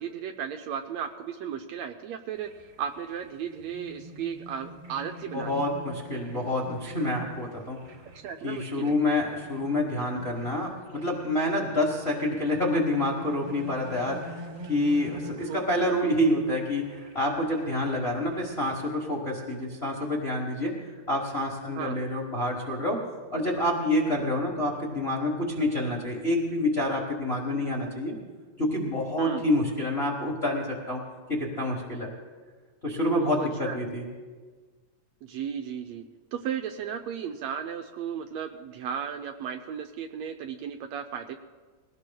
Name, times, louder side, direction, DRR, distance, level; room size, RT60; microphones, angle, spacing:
voice 1, 0.0-5.6 8.2-9.0 15.4-15.6 21.7-22.0 29.2-29.5 33.2-33.8 35.2-36.0 36.3-41.4, right 8 dB, 75° right, 5 dB, 1.6 m, -35 dB
sound 1, 2.3-19.0, equal, 55° right, 1.7 m, -46 dB
voice 2, 5.3-7.8 8.4-20.8 21.1-23.0 23.3-28.1 28.6-31.0 31.3-32.1 32.8-34.0, left 1 dB, 40° left, -1 dB, 0.8 m, -28 dB
21.5 x 17.5 x 2.3 m, 1.4 s
omnidirectional pair, 3.4 m